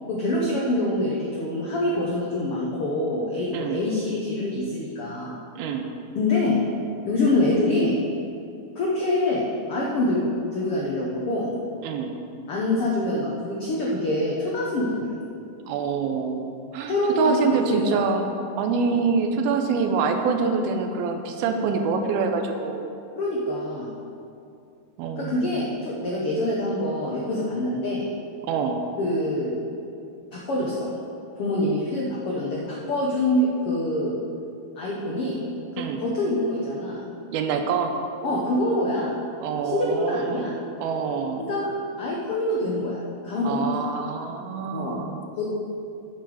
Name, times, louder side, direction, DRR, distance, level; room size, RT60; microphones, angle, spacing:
voice 1, 0.1-5.4 6.1-6.6 7.0-8.0 8.7-9.4 9.7-11.5 12.5-15.1 16.9-18.0 18.8-19.0 23.1-23.9 25.2-28.1 29.0-29.5 30.3-30.9 31.4-34.2 34.8-35.4 35.7-37.0 38.2-39.1 39.6-40.6 41.4-43.8 44.7-45.0 45.4-45.5, left 1 dB, 80° left, -4 dB, 1.2 m, -25 dB
voice 2, 3.5-3.8 5.5-5.9 11.8-12.1 15.7-18.3 18.6-22.9 25.0-25.5 28.4-28.8 35.8-36.0 37.3-37.9 39.4-40.5 40.8-41.5 43.4-45.2, right 5 dB, 90° right, 4 dB, 2.7 m, -26 dB
10.0 x 8.0 x 4.9 m, 2.6 s
omnidirectional pair, 4.3 m